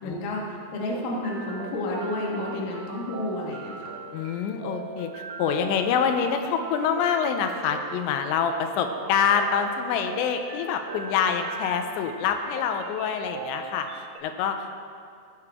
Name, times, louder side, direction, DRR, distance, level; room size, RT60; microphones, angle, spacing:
voice 1, 0.0-3.9, left 1 dB, 60° left, -3 dB, 2.8 m, -31 dB
sound 1, 0.9-14.2, right 4 dB, 85° right, 3.1 m, -40 dB
voice 2, 4.1-14.7, left 7 dB, 90° left, 6 dB, 2.9 m, -26 dB
16.5 x 6.7 x 3.6 m, 2.3 s
omnidirectional pair, 5.0 m